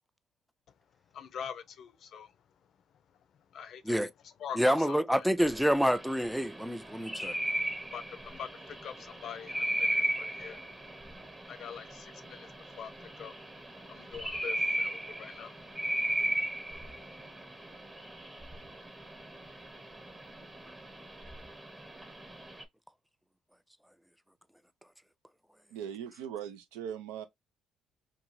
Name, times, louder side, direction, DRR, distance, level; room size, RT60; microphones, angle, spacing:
voice 1, 1.1-2.3 3.5-4.0 4.2-5.3 7.7-17.3, left 8 dB, 60° left, 0.5 m, -45 dB
voice 2, 4.6-7.4, equal, ahead, 0.3 m, -27 dB
sound 1, 5.5-22.6, right 1 dB, 20° right, 1.0 m, -37 dB
voice 3, 25.7-27.2, right 9 dB, 90° right, 0.4 m, -40 dB
2.6 x 2.3 x 3.0 m
supercardioid pair, 65°, 0 cm